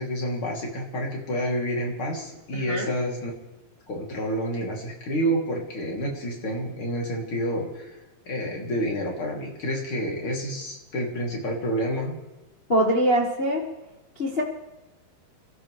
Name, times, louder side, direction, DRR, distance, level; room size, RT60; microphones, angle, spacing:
voice 1, 0.0-3.3 3.9-7.9 8.3-12.2, equal, 40° left, -1 dB, 3.6 m, -29 dB
voice 2, 2.5-2.9 12.7-13.6 14.2-14.4, equal, 55° left, -2 dB, 0.6 m, -23 dB
27.5 x 13.5 x 3.3 m, 1.0 s
omnidirectional pair, 4.0 m